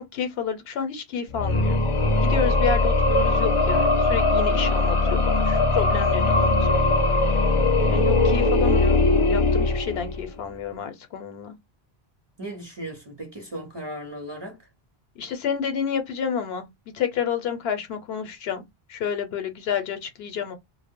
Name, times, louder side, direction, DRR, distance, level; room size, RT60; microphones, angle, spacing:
voice 1, 0.0-1.8 2.2-6.8 7.2-7.4 7.9-11.5 15.2-16.7 16.9-20.6, left 7 dB, 75° left, 0.9 m, -30 dB
sound 1, 1.3-10.4, left 2 dB, 40° left, 0.5 m, -20 dB
voice 2, 12.4-14.6, right 1 dB, 30° right, 0.6 m, -36 dB
2.0 x 2.0 x 3.5 m
omnidirectional pair, 1.0 m